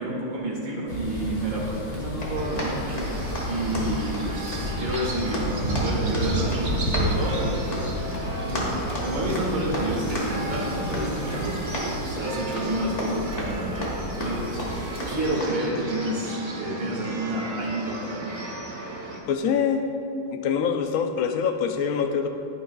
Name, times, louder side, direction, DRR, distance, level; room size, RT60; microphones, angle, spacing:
voice 1, 0.0-3.1 3.4-8.1 8.4-18.4, right 1 dB, 75° right, -4 dB, 2.7 m, -30 dB
sound 1, 0.9-15.3, equal, 70° left, 2.2 m, -32 dB
Run, 1.8-15.5, equal, 40° left, 1.7 m, -35 dB
sound 2, 2.3-19.2, right 2 dB, 40° right, 1.2 m, -35 dB
voice 2, 19.3-19.9 20.3-22.3, left 7 dB, 85° left, 5 dB, 0.7 m, -24 dB
11.0 x 10.0 x 2.3 m, 2.6 s
omnidirectional pair, 2.2 m